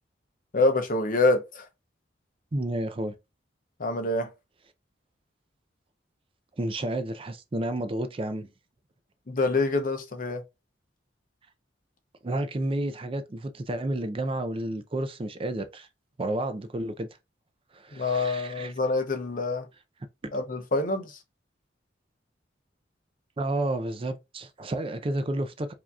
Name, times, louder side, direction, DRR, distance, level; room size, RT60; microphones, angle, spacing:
voice 1, 0.5-1.6 3.8-4.3 9.3-10.4 17.9-19.7 20.3-21.1, left 3 dB, 50° left, 0.7 m, -26 dB
voice 2, 2.5-3.1 6.6-8.5 12.2-15.9 16.2-17.1 17.7-18.7 20.2-20.3 23.4-25.7, right 1 dB, 30° right, 0.4 m, -31 dB
4.8 x 2.8 x 2.3 m
head